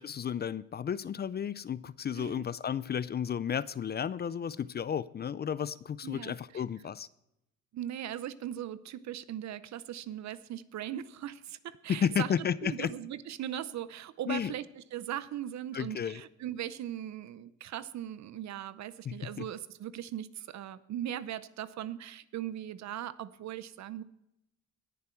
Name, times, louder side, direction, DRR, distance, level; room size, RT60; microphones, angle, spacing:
voice 1, 0.0-7.1 11.9-12.9 14.3-14.5 15.7-16.2 19.0-19.5, left 8 dB, 35° left, 0.4 m, -33 dB
voice 2, 2.1-2.5 6.0-6.6 7.7-12.3 12.6-24.0, right 11 dB, 65° right, 0.7 m, -39 dB
18.5 x 7.0 x 4.5 m
cardioid pair, 90°, 30 cm